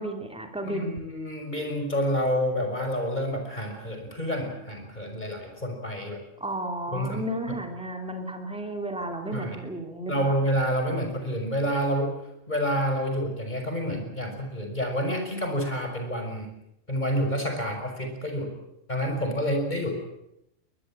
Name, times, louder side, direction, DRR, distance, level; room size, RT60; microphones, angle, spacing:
voice 1, 0.0-1.0 6.4-10.4, right 1 dB, 5° right, 4 dB, 2.9 m, -33 dB
voice 2, 0.6-6.2 6.9-7.6 9.3-9.6 10.1-12.1 12.5-16.5 16.9-18.5 18.9-19.9, equal, 35° left, 4 dB, 6.1 m, -28 dB
23.0 x 20.5 x 8.9 m, 0.83 s
omnidirectional pair, 1.3 m